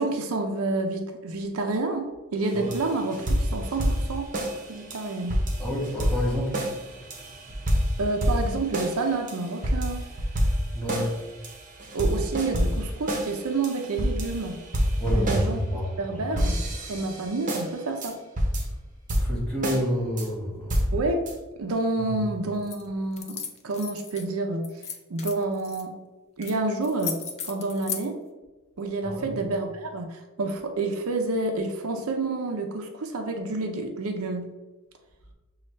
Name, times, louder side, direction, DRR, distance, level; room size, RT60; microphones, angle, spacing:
voice 1, 0.0-4.3 4.7-5.4 8.0-10.0 11.9-14.6 15.1-15.6 16.0-16.6 16.9-18.2 20.9-21.2 21.6-23.4 23.6-24.7 25.1-25.9 26.4-27.2 27.4-28.2 28.8-34.5, right 3 dB, 80° right, 4 dB, 0.6 m, -29 dB
sound 1, 2.4-16.0 16.4-17.7 18.0-18.1 18.4-18.8 19.1-19.8 20.2-20.3 20.7-21.3, equal, 35° right, 0.7 m, -27 dB
voice 2, 5.6-7.0 7.5-7.6 10.7-11.1 15.0-16.2 19.2-20.7 22.1-22.2 29.0-29.3, equal, 5° left, -6 dB, 1.4 m, -30 dB
sound 2, 22.6-22.8 23.1-24.3 24.6-25.8 26.4-26.6 26.8-28.0, left 7 dB, 30° left, 0.3 m, -35 dB
6.5 x 2.3 x 3.2 m, 1.2 s
head